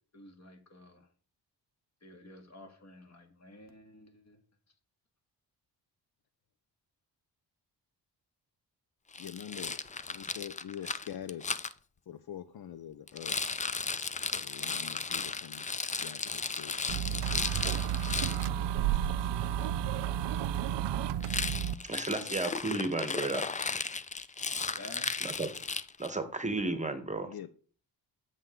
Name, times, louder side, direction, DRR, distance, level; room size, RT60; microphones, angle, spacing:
voice 1, 0.1-1.1 2.0-4.4 22.1-22.4 24.8-25.1, left 1 dB, 40° left, 5 dB, 1.9 m, -51 dB
Rattle, 9.1-11.7 13.1-18.5 21.2-26.2, left 4 dB, 20° left, 0.4 m, -35 dB
voice 2, 9.2-9.8 10.1-11.5 12.1-13.4 14.3-15.7 16.0-17.6 18.4-19.9 27.3-27.5, left 10 dB, 60° left, 12 dB, 0.6 m, -45 dB
sound 1, 16.9-21.7, right 10 dB, 80° right, 0.5 m, -31 dB
voice 3, 21.9-23.6 25.2-25.5 26.0-27.3, right 2 dB, 15° right, 9 dB, 1.0 m, -33 dB
8.3 x 7.4 x 3.7 m, 0.42 s
cardioid pair, 85°, 42 cm